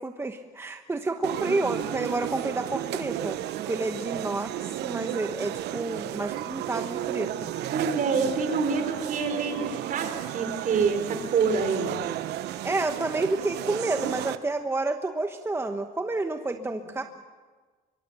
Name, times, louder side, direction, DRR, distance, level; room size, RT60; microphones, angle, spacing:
voice 1, 0.0-3.4 3.7-7.5 12.6-17.0, right 2 dB, 15° right, 6 dB, 1.1 m, -30 dB
sound 1, 1.2-14.4, right 12 dB, 80° right, 1.0 m, -33 dB
voice 2, 7.7-11.9 16.5-16.7, right 5 dB, 55° right, 7 dB, 4.4 m, -27 dB
23.5 x 23.5 x 6.8 m, 1.4 s
cardioid pair, 110°, 17 cm